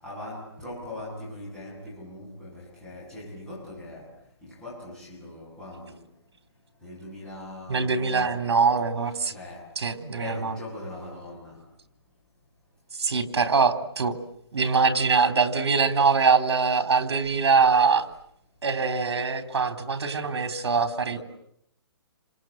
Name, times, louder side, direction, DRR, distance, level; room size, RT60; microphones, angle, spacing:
voice 1, 0.0-4.1 4.4-6.0 6.8-8.5 9.2-9.7 10.2-11.6 21.1-21.2, left 1 dB, 5° left, 8.0 m, -40 dB
voice 2, 7.7-9.3 9.8-10.6 12.9-14.2 14.5-18.1 18.6-21.2, right 5 dB, 75° right, 3.7 m, -23 dB
28.5 x 26.0 x 7.8 m
hypercardioid pair, 170°, 14 cm